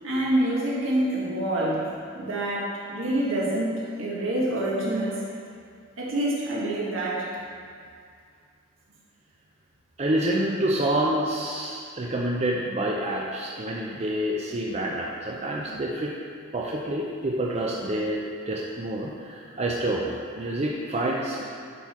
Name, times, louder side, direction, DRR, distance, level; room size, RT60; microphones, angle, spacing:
voice 1, 0.0-1.8 2.2-5.2 6.0-7.3, right 1 dB, 75° right, -6 dB, 1.6 m, -26 dB
voice 2, 10.0-16.2 16.5-21.4, right 1 dB, 30° right, -3 dB, 0.5 m, -28 dB
10.5 x 3.6 x 4.3 m, 2.2 s
head